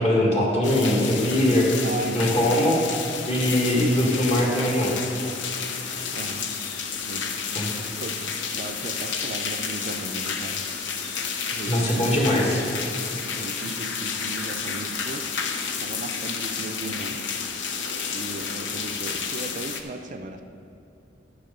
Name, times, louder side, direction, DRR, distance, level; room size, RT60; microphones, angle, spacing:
voice 1, 0.0-1.7 2.1-2.8 3.3-5.0 7.5-7.7 11.7-12.6, left 1 dB, 35° left, -3 dB, 1.8 m, -21 dB
sound 1, 0.6-19.8, left 6 dB, 85° left, 0.8 m, -31 dB
voice 2, 1.8-2.8 6.1-6.5 7.0-7.3 8.0-8.2 8.5-10.6 11.5-12.3 13.4-15.3 15.8-17.2 17.7-17.8 18.1-20.4, right 2 dB, 45° right, 7 dB, 0.5 m, -36 dB
12.0 x 6.5 x 5.2 m, 2.6 s
head